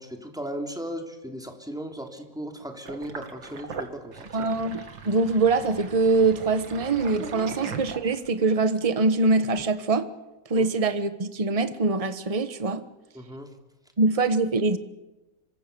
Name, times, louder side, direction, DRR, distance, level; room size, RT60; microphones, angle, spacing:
voice 1, 0.0-4.5 10.5-10.7 13.1-13.5, equal, ahead, 3.2 m, -37 dB
Sink (filling or washing), 2.9-8.4, right 5 dB, 70° right, 2.7 m, -39 dB
voice 2, 4.3-10.1 10.5-12.8 14.0-14.8, right 3 dB, 20° right, 1.1 m, -23 dB
26.5 x 23.5 x 6.9 m
omnidirectional pair, 2.1 m